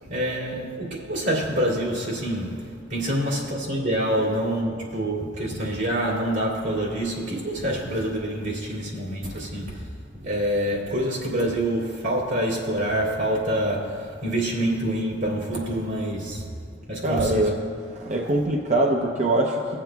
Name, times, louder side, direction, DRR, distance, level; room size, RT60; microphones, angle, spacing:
voice 1, 0.0-9.9 10.2-16.5 16.9-17.5, right 1 dB, 80° right, 2.5 m, -26 dB
voice 2, 17.0-17.6 17.9-19.8, right 1 dB, 40° right, 0.6 m, -23 dB
18.5 x 7.5 x 2.3 m
head